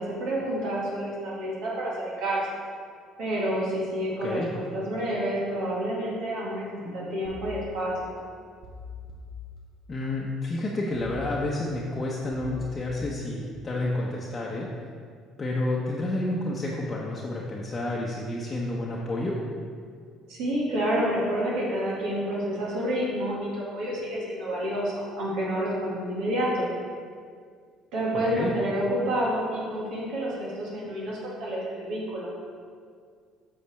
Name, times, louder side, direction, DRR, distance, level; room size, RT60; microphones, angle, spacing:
voice 1, 0.0-2.4 3.2-8.1 20.3-26.7 27.9-32.3, equal, 65° right, -5 dB, 1.8 m, -29 dB
voice 2, 4.2-4.5 9.9-14.7 15.4-19.4 28.1-28.5, left 2 dB, 30° left, -4 dB, 0.9 m, -30 dB
sound 1, 7.2-8.2 8.6-10.1 10.9-11.9 12.3-13.8 14.2-14.6, left 5 dB, 45° right, 1.3 m, -43 dB
8.1 x 5.7 x 3.3 m, 2.1 s
hypercardioid pair, 60°, 0 cm